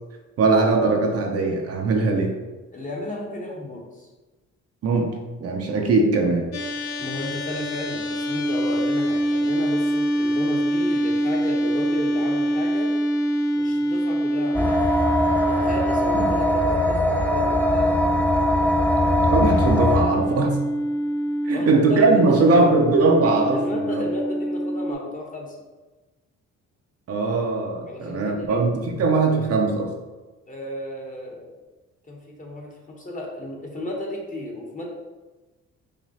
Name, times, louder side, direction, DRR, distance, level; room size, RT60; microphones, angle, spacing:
voice 1, 0.4-2.3 4.8-6.5 16.1-16.3 19.2-20.6 21.4-24.0 27.1-29.9, right 3 dB, 55° right, 2 dB, 0.6 m, -20 dB
voice 2, 2.7-4.1 7.0-12.9 13.5-14.8 15.5-18.0 21.5-22.7 23.5-25.6 27.9-28.6 30.5-31.5 32.1-34.9, left 1 dB, 25° left, -1 dB, 0.9 m, -33 dB
sound 1, 6.5-24.9, equal, 60° left, 0.6 m, -25 dB
sound 2, 14.5-20.0, left 1 dB, 5° left, 0.3 m, -21 dB
4.9 x 2.4 x 2.8 m, 1.2 s
cardioid pair, 90°, 30 cm